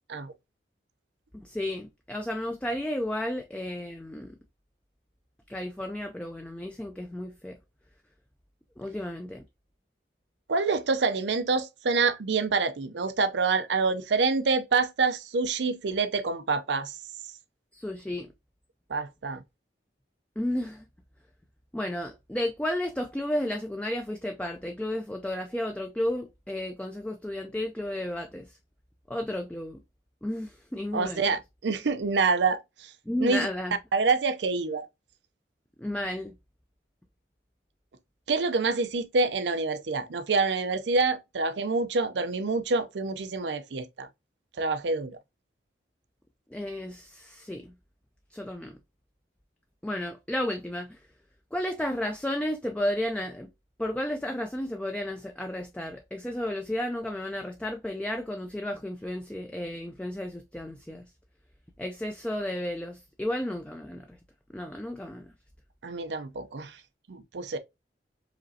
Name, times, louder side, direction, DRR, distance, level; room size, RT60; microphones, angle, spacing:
voice 1, 1.3-4.3 5.5-7.6 8.8-9.4 17.7-18.3 20.4-20.8 21.7-28.6 29.1-29.8 30.2-31.2 33.1-33.8 35.8-36.3 46.5-47.7 48.3-48.8 49.8-51.0 51.5-53.5 53.8-61.0 61.8-64.2 64.5-65.3, left 1 dB, 5° left, 0.3 m, -33 dB
voice 2, 10.5-17.0 18.9-19.4 30.9-32.9 33.2-33.5 33.9-34.9 38.3-44.1 44.6-45.2 65.8-66.8 67.1-67.6, right 4 dB, 80° right, 0.6 m, -27 dB
4.9 x 3.0 x 2.7 m
head